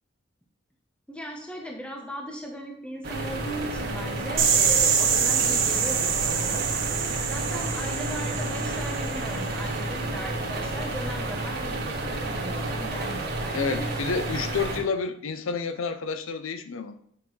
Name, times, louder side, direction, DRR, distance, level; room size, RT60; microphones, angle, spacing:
voice 1, 1.1-6.7 7.3-13.9, equal, 5° left, 0.8 m, -38 dB
sound 1, 3.0-14.8, right 2 dB, 55° right, 1.5 m, -31 dB
sound 2, 4.4-9.2, right 7 dB, 70° right, 1.1 m, -25 dB
voice 2, 13.5-16.9, left 5 dB, 90° left, 0.6 m, -29 dB
8.5 x 5.8 x 3.2 m
head